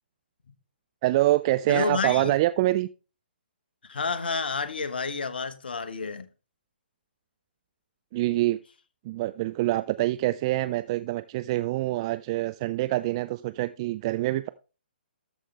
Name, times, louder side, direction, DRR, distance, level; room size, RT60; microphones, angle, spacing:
voice 1, 1.0-2.9 8.1-8.6 9.0-14.5, right 16 dB, 30° right, 0.3 m, -25 dB
voice 2, 1.7-2.4 3.9-6.3, left 4 dB, 70° left, 1.2 m, -30 dB
13.0 x 5.3 x 3.3 m
figure-of-eight pair, 135°, 6 cm